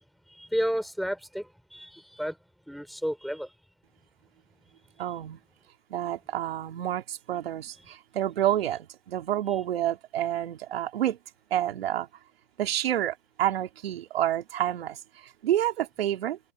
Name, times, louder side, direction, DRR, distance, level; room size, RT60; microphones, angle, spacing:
voice 1, 0.3-2.4 2.7-3.5, equal, ahead, 4.1 m, -32 dB
voice 2, 5.0-5.4 5.9-11.2 11.5-12.1 12.6-16.4, right 12 dB, 70° right, 3.1 m, -29 dB
hypercardioid pair, 150°, 31 cm